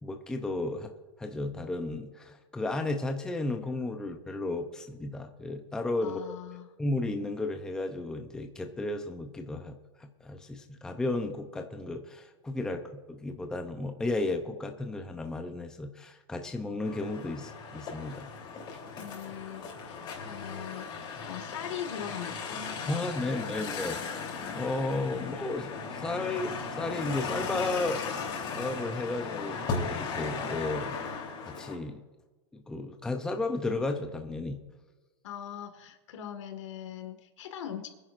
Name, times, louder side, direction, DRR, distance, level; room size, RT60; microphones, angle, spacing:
voice 1, 0.0-0.9 1.2-6.4 6.8-9.7 10.0-12.8 13.1-18.3 22.9-24.2 24.5-28.0 28.5-31.0 31.4-32.0 32.5-34.6, left 2 dB, 5° left, 5 dB, 0.6 m, -33 dB
voice 2, 6.0-6.8 19.0-23.5 25.1-25.3 35.2-37.9, left 9 dB, 70° left, 7 dB, 1.9 m, -41 dB
sound 1, 16.8-31.7, left 5 dB, 30° left, 3.5 m, -37 dB
24.0 x 10.5 x 2.6 m, 1.2 s
supercardioid pair, 150°, 16 cm